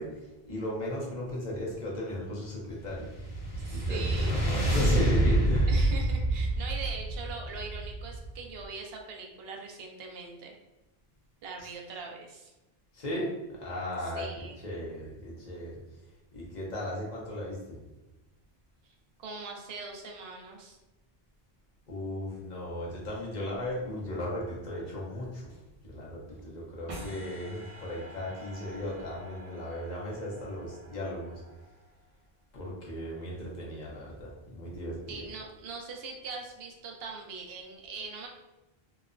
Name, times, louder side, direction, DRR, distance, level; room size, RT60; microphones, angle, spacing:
voice 1, 0.0-3.1 3.7-5.7 11.6-12.0 12.9-13.3 13.6-15.7 16.3-17.8 21.9-25.6 25.8-31.4 32.5-35.2, left 1 dB, 45° left, -4 dB, 0.8 m, -36 dB
sound 1, 2.9-8.4, right 1 dB, 80° left, 1.1 m, -27 dB
voice 2, 3.7-4.3 5.7-10.5 11.4-12.5 14.0-14.6 19.2-20.8 35.1-38.3, right 4 dB, 70° right, 1 dB, 0.8 m, -41 dB
sound 2, 26.9-32.1, right 1 dB, 45° right, 0.5 m, -48 dB
3.0 x 2.0 x 2.4 m, 1.0 s
omnidirectional pair, 1.1 m